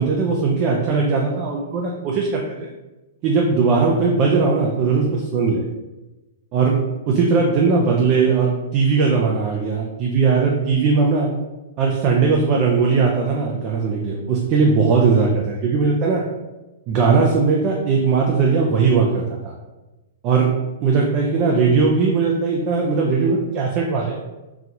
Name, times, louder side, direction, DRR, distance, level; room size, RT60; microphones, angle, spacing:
voice 1, 0.0-2.7 3.2-5.6 6.5-6.8 7.1-11.3 11.8-16.2 16.9-19.5 20.2-20.5 20.8-24.2, right 4 dB, 30° right, -1 dB, 0.4 m, -19 dB
3.9 x 2.3 x 2.8 m, 1.1 s
hypercardioid pair, 160°, 0 cm